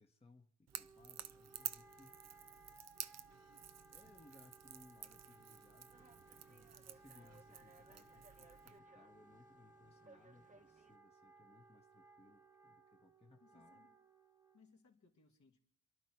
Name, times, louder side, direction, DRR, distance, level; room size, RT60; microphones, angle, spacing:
voice 1, 0.0-2.2 3.9-13.8, left 3 dB, 20° left, 2 dB, 1.2 m, -66 dB
Wind instrument woodwind instrument, 0.7-14.8, right 2 dB, 10° right, 1.4 m, -64 dB
Crackle / Crack, 0.7-8.8, right 9 dB, 55° right, 0.7 m, -52 dB
sound 1, 5.9-11.0, right 3 dB, 25° right, 1.2 m, -65 dB
voice 2, 13.4-14.0 14.5-15.6, left 4 dB, 65° left, 1 dB, 2.6 m, -68 dB
28.0 x 11.0 x 4.6 m, 0.69 s
cardioid pair, 80°, 31 cm